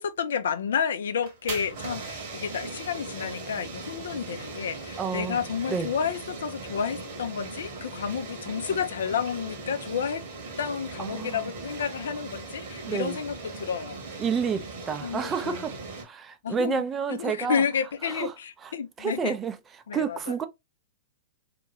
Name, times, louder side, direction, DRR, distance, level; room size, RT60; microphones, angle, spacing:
voice 1, 0.0-10.2 10.6-14.0 15.0-15.6 16.4-16.8 17.1-19.4 19.9-20.4, left 7 dB, 65° left, 0.4 m, -30 dB
sound 1, 1.1-16.0, right 3 dB, 55° right, 1.2 m, -39 dB
voice 2, 5.0-5.4 5.7-5.9 11.0-11.5 12.9-13.2 14.2-15.7 16.0-17.6 18.1-18.3 18.6-18.7 19.0-19.5 19.9-20.5, right 6 dB, 20° right, 0.4 m, -29 dB
2.8 x 2.2 x 2.9 m
figure-of-eight pair, 105°, 0 cm